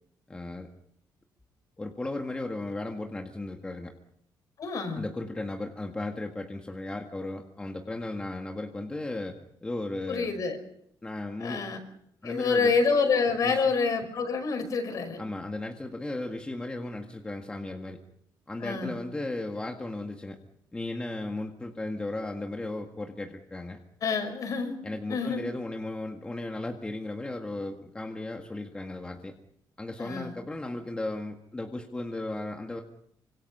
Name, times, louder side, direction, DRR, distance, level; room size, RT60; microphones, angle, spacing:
voice 1, 0.3-0.7 1.8-3.9 5.0-9.4 9.6-10.3 11.0-11.6 12.2-12.7 13.4-13.6 15.2-18.0 18.5-20.4 20.7-23.8 24.8-29.3 29.8-32.8, left 2 dB, 15° left, 2 dB, 1.9 m, -35 dB
voice 2, 4.6-5.0 10.1-10.6 11.4-11.8 12.2-15.2 18.6-18.9 24.0-24.7 25.1-25.4 30.0-30.3, left 4 dB, 50° left, 7 dB, 5.3 m, -27 dB
27.0 x 25.5 x 5.6 m, 0.73 s
cardioid pair, 150°, 8 cm